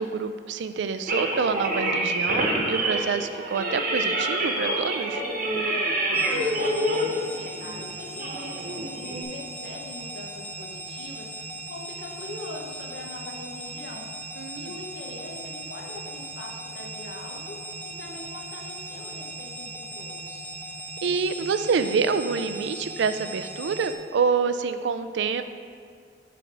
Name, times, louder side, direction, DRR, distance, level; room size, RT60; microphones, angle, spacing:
voice 1, 0.0-5.2 14.4-14.7 21.0-25.4, right 5 dB, 75° right, 10 dB, 0.4 m, -27 dB
sound 1, 1.1-9.2, right 1 dB, 50° right, 1.1 m, -27 dB
sound 2, 6.1-23.9, right 1 dB, 10° left, 0.5 m, -38 dB
voice 2, 6.3-14.1 14.5-17.6 18.0-20.4, left 2 dB, 70° left, -1 dB, 1.0 m, -42 dB
7.1 x 3.5 x 6.0 m, 2.2 s
head